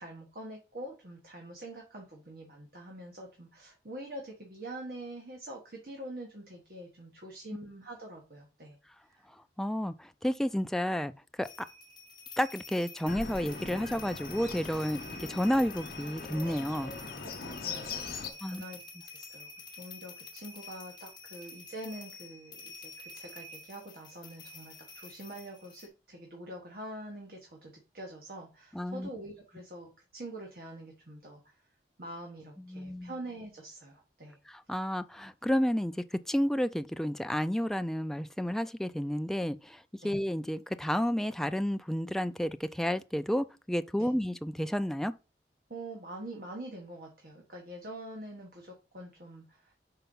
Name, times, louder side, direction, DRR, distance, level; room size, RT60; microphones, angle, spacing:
voice 1, 0.0-9.3 17.2-19.5 19.8-31.5 32.0-34.4 40.0-40.2 44.0-44.1 45.7-49.7, right 1 dB, 55° right, 1.3 m, -45 dB
voice 2, 9.3-11.7 12.4-17.3 18.4-18.6 28.7-29.1 32.6-33.1 34.5-45.1, equal, ahead, 0.3 m, -31 dB
sound 1, 11.4-25.9, left 4 dB, 25° left, 1.0 m, -48 dB
Bird, 13.1-18.3, left 4 dB, 55° left, 0.8 m, -41 dB
5.7 x 4.1 x 5.3 m
head